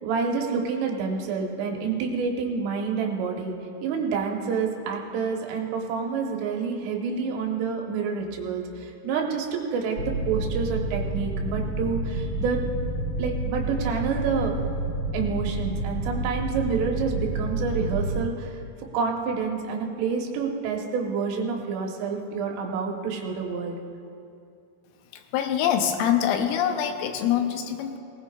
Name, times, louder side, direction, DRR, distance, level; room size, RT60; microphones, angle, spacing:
voice 1, 0.0-3.6 3.8-10.0 10.3-12.6 13.2-14.5 15.1-18.6 18.9-23.8, right 5 dB, 75° right, 1 dB, 3.6 m, -28 dB
sound 1, 10.0-18.2, right 1 dB, 15° left, 3.2 m, -29 dB
voice 2, 25.3-28.0, left 9 dB, 80° left, 5 dB, 3.3 m, -24 dB
19.0 x 19.0 x 2.4 m, 2.5 s
omnidirectional pair, 5.9 m